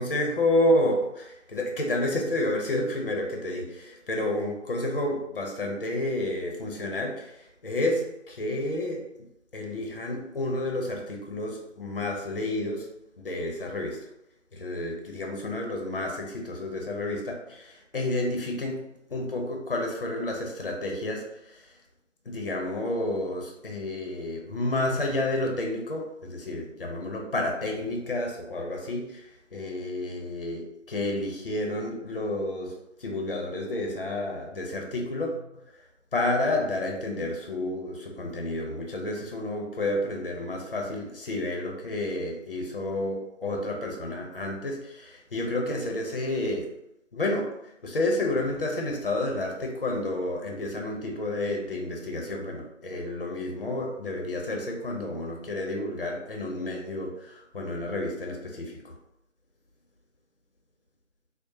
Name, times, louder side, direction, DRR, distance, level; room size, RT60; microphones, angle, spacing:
voice 1, 0.0-9.0 9.5-12.9 13.2-14.1 14.5-21.8 22.2-35.7 36.1-46.7 47.1-58.9, left 1 dB, 45° left, 1 dB, 0.7 m, -30 dB
4.7 x 2.1 x 2.7 m, 0.84 s
figure-of-eight pair, 165°, 38 cm